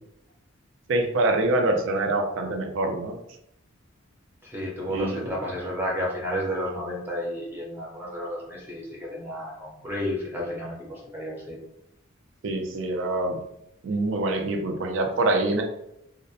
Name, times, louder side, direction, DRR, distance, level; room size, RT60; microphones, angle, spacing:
voice 1, 0.9-3.2 4.9-5.2 12.4-13.4 13.8-15.6, right 2 dB, 70° right, 4 dB, 0.4 m, -25 dB
voice 2, 4.4-11.6, equal, 10° right, -4 dB, 0.6 m, -32 dB
2.4 x 2.1 x 2.6 m, 0.81 s
head